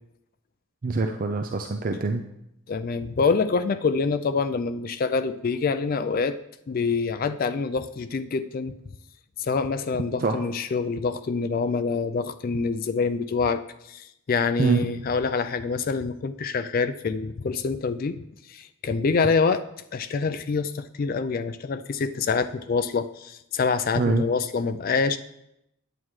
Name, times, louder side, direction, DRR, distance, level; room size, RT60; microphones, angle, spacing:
voice 1, 0.8-2.2 10.2-10.4 14.6-14.9 24.0-24.2, right 3 dB, 40° right, 5 dB, 0.4 m, -24 dB
voice 2, 2.7-6.4 6.7-8.7 9.4-13.6 13.9-19.6 19.9-25.2, left 4 dB, 40° left, 11 dB, 0.3 m, -26 dB
9.2 x 8.6 x 3.2 m, 0.81 s
head